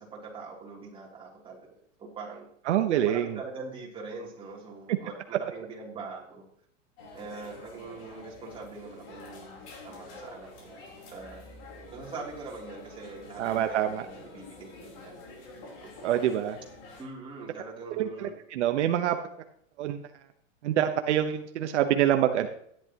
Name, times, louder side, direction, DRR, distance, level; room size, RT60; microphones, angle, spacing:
voice 1, 0.0-2.5 3.0-6.4 7.1-10.8 11.1-11.4 11.9-15.2 15.8-15.9 17.0-18.4, right 4 dB, 15° right, -4 dB, 3.2 m, -43 dB
voice 2, 2.7-3.4 13.4-14.1 16.0-16.6 18.0-19.2 19.8-20.0 20.6-22.5, right 11 dB, 60° right, 6 dB, 1.2 m, -26 dB
sound 1, 7.0-17.0, left 2 dB, 45° left, 4.0 m, -47 dB
14.0 x 11.0 x 3.0 m, 0.67 s
supercardioid pair, 155°, 38 cm